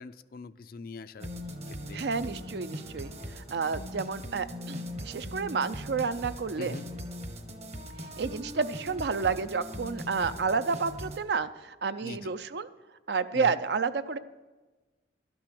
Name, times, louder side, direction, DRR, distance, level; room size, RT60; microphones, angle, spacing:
voice 1, 0.0-2.0 6.6-6.9 12.0-12.4 13.3-13.6, left 3 dB, 50° left, 14 dB, 0.4 m, -43 dB
sound 1, 1.2-11.2, equal, 35° right, 1.0 m, -40 dB
voice 2, 1.9-6.7 8.2-12.7 13.1-14.2, right 5 dB, 65° right, 13 dB, 0.5 m, -30 dB
12.0 x 6.1 x 8.5 m, 1.2 s
head